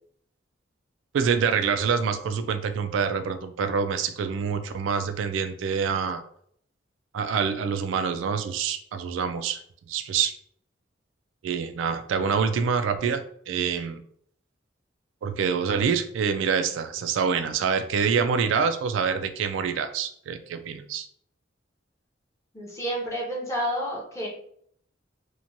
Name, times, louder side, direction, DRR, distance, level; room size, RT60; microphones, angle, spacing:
voice 1, 1.1-6.2 7.1-9.6 9.9-10.3 11.4-14.0 15.2-21.1, right 6 dB, 90° right, 9 dB, 0.3 m, -26 dB
voice 2, 22.5-24.3, equal, 15° left, -4 dB, 0.7 m, -30 dB
2.9 x 2.2 x 2.6 m, 0.64 s
head